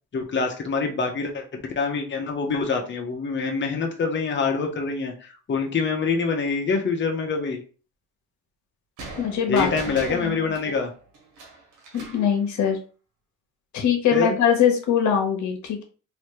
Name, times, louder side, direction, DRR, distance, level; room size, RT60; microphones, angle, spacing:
voice 1, 0.1-7.6 9.5-10.9 14.1-14.4, left 4 dB, 40° left, 3 dB, 0.9 m, -25 dB
sound 1, 9.0-12.3, right 2 dB, 85° right, 1.2 m, -39 dB
voice 2, 9.2-9.7 10.1-10.4 11.9-12.8 13.7-15.8, left 8 dB, 70° left, 3 dB, 1.1 m, -22 dB
3.2 x 2.8 x 3.1 m, 0.37 s
cardioid pair, 90°, 30 cm